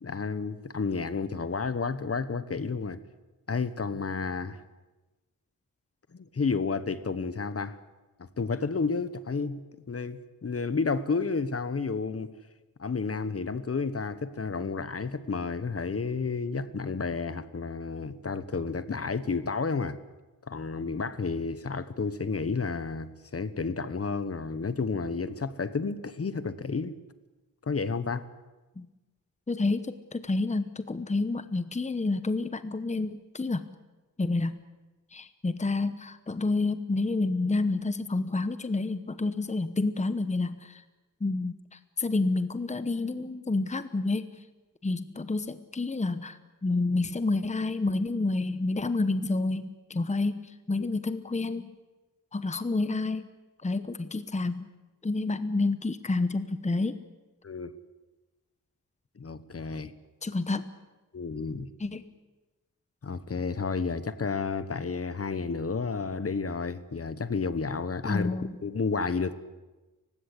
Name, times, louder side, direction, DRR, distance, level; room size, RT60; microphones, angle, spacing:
voice 1, 0.0-3.0 3.5-4.6 6.1-7.8 8.2-12.4 12.8-20.0 20.5-27.0 27.7-28.3 50.8-50.9 57.4-57.8 59.2-59.9 61.1-61.7 63.0-68.4 68.6-69.4, left 4 dB, 45° left, 14 dB, 1.2 m, -31 dB
voice 2, 29.5-33.7 34.2-34.6 35.1-40.8 41.2-44.3 44.8-51.7 52.3-53.3 53.6-54.7 55.0-57.0 60.2-60.7 61.8-62.1 68.0-68.6, left 3 dB, 20° left, 12 dB, 1.0 m, -29 dB
30.0 x 16.0 x 8.5 m, 1.1 s
wide cardioid pair, 100°, 34 cm